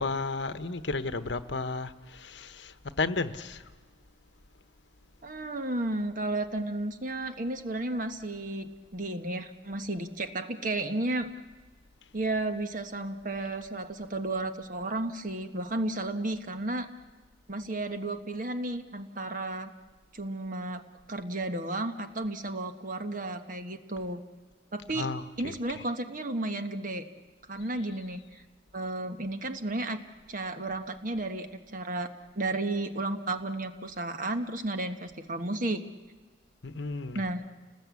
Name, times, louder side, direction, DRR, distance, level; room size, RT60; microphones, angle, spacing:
voice 1, 0.0-3.7 24.9-25.8 36.6-37.2, left 3 dB, 65° left, 1.1 m, -33 dB
voice 2, 5.2-11.3 12.1-16.9 17.5-19.7 20.1-20.8 21.1-24.2 24.7-25.1 25.4-27.0 27.5-28.4 28.7-30.0 30.3-32.1 32.3-35.8 37.1-37.4, right 2 dB, 45° right, 1.3 m, -33 dB
30.0 x 20.0 x 8.4 m
head